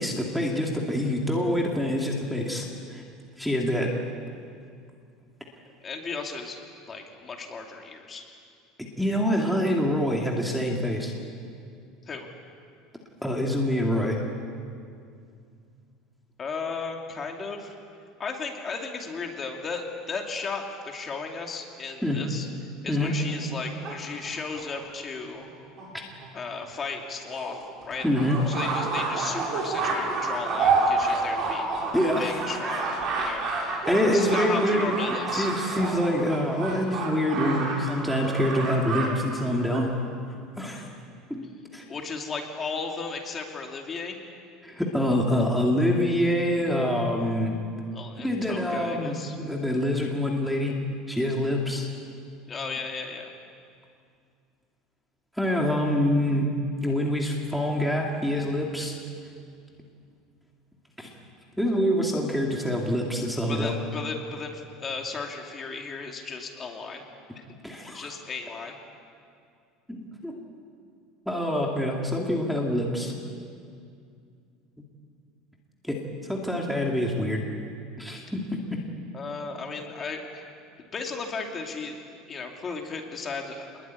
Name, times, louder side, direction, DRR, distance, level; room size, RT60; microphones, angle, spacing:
voice 1, 0.0-3.0 3.4-3.9 9.0-11.1 13.2-14.2 22.0-22.2 22.9-23.1 28.0-28.4 31.9-32.4 33.9-34.9 35.3-39.9 40.6-40.9 41.3-41.8 44.6-47.5 48.2-50.8 51.1-51.9 55.4-56.5 56.8-58.9 61.0-61.1 61.6-63.8 67.6-68.1 69.9-70.4 71.3-73.1 75.8-77.4 78.0-78.8, equal, ahead, -2 dB, 2.4 m, -26 dB
voice 2, 5.8-6.6 6.9-8.3 12.1-12.3 16.4-17.7 18.2-22.5 22.8-25.4 26.3-27.6 27.8-28.0 28.5-31.7 32.2-32.9 33.2-35.5 41.9-44.2 47.9-49.3 52.5-53.3 63.5-67.0 67.4-67.5 67.9-68.8 79.1-80.4 80.9-82.0 82.3-83.7, left 4 dB, 20° left, 2 dB, 2.6 m, -35 dB
sound 1, 23.0-24.6 25.4-25.5 25.8-25.9 26.2-26.3 26.6-26.7 27.2-39.1 39.4-39.8, right 3 dB, 40° right, 6.5 m, -29 dB
26.5 x 21.0 x 9.7 m, 2.3 s
cardioid pair, 160°, 0 cm